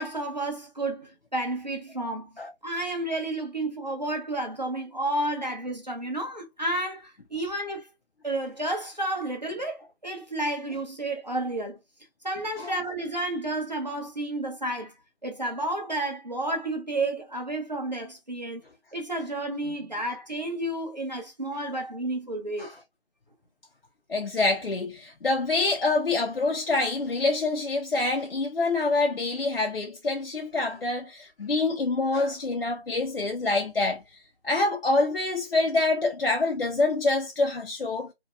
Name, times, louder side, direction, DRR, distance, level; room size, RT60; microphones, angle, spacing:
voice 1, 0.0-2.3 2.6-7.9 8.2-11.8 12.2-14.9 15.2-18.6 18.9-22.7, right 1 dB, 40° right, 0.7 m, -31 dB
voice 2, 24.1-34.0 34.4-38.1, left 3 dB, 65° left, 0.5 m, -26 dB
2.7 x 2.1 x 2.2 m
figure-of-eight pair, 175°, 32 cm